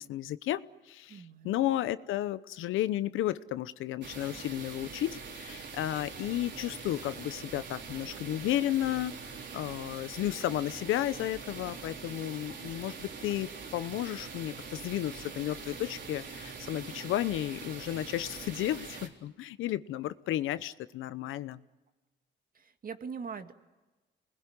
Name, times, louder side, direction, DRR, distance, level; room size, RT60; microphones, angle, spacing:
voice 1, 0.0-9.1 9.5-21.6, left 13 dB, 85° left, 15 dB, 0.9 m, -33 dB
voice 2, 1.1-1.5 22.5-23.5, right 6 dB, 45° right, 8 dB, 2.0 m, -41 dB
sound 1, 4.0-19.1, right 5 dB, 65° right, 3.9 m, -43 dB
27.5 x 20.5 x 9.7 m, 1.2 s
cardioid pair, 90°, 20 cm